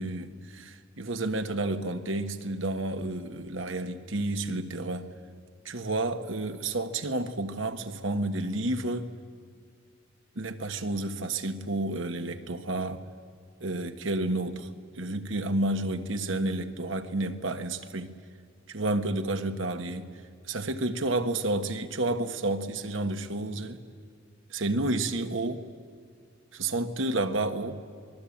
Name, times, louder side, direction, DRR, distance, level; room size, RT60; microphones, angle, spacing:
voice 1, 0.0-5.1 5.6-9.1 10.3-13.0 13.6-14.7 14.9-18.1 18.7-20.1 20.5-23.8 24.5-25.6 26.5-27.8, right 2 dB, 70° right, 1.4 m, -30 dB
27.0 x 20.5 x 8.7 m
head